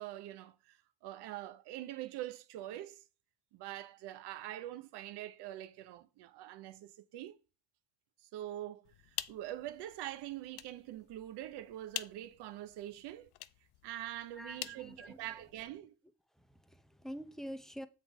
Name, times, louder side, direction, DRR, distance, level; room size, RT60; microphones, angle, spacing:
voice 1, 0.0-3.0 3.5-7.4 8.2-13.3 13.8-15.9, right 13 dB, 85° right, 0.8 m, -44 dB
sound 1, 8.8-15.7, left 15 dB, 75° left, 0.6 m, -48 dB
voice 2, 14.4-15.2 16.4-17.9, equal, ahead, 0.8 m, -46 dB
7.1 x 3.8 x 4.9 m
supercardioid pair, 70°, 39 cm